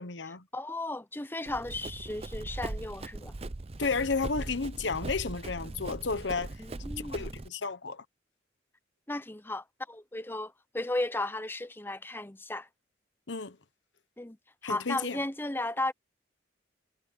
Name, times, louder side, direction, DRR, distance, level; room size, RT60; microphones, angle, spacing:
voice 1, 0.0-0.4 3.8-6.5 7.1-8.0 13.3-13.6 14.6-15.2, left 4 dB, 80° left, 1.1 m, -32 dB
voice 2, 0.5-3.3 6.6-7.3 9.1-12.7 14.2-14.4 14.6-15.9, left 2 dB, 10° left, 0.7 m, -35 dB
Run, 1.5-7.5, right 2 dB, 35° right, 0.6 m, -40 dB
head